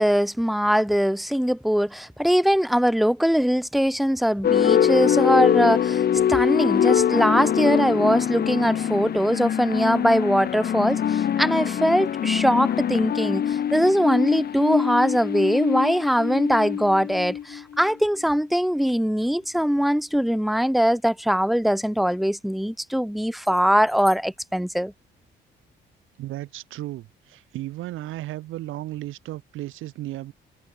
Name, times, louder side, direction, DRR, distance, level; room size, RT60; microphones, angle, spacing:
voice 1, 0.0-6.0 6.3-24.9, equal, ahead, 1.1 m, -22 dB
sound 1, 4.4-17.8, left 9 dB, 50° left, 1.0 m, -23 dB
voice 2, 26.2-30.3, right 16 dB, 90° right, 3.1 m, -34 dB
cardioid pair, 90°, 20 cm